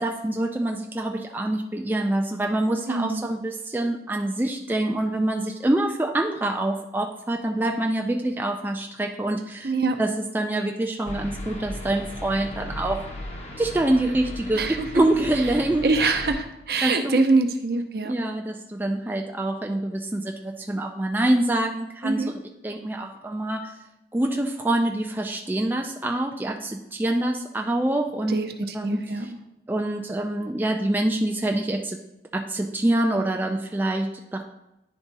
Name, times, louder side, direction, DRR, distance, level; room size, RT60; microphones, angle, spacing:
voice 1, 0.0-9.7 10.0-13.1 13.6-14.6 14.9-15.9 16.8-17.2 18.0-22.3 22.6-23.8 24.1-28.4 28.7-29.3 29.7-32.0 32.3-34.4, right 1 dB, 10° right, 3 dB, 0.3 m, -25 dB
voice 2, 2.9-3.3 9.6-10.0 14.5-14.9 15.8-18.1 22.0-22.3 28.3-29.3, right 3 dB, 60° right, 6 dB, 0.7 m, -24 dB
sound 1, 11.1-16.3, left 1 dB, 35° left, 0.9 m, -36 dB
10.0 x 3.5 x 4.0 m, 0.94 s
head